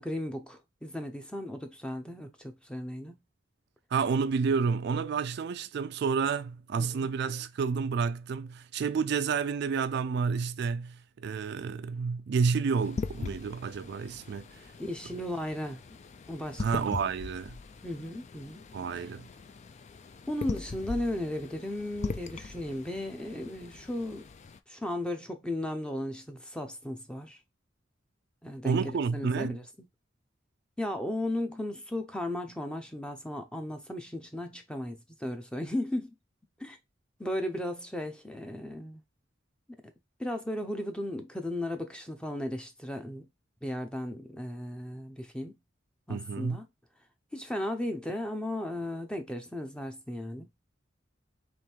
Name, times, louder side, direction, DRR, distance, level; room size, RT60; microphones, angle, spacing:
voice 1, 0.0-3.2 6.8-7.1 14.8-15.8 16.3-16.8 17.8-18.6 20.3-24.3 24.7-27.4 28.4-29.6 30.8-36.1 36.6-36.8 37.2-39.0 40.2-43.3 43.6-45.6 46.1-46.7 47.3-50.5, left 1 dB, 5° left, 0.7 m, -35 dB
voice 2, 3.9-14.5 16.6-17.6 18.7-19.3 28.6-29.6 46.1-46.6, right 5 dB, 60° right, 0.3 m, -30 dB
sound 1, 12.8-24.6, left 4 dB, 35° left, 0.4 m, -41 dB
3.6 x 3.2 x 4.4 m
head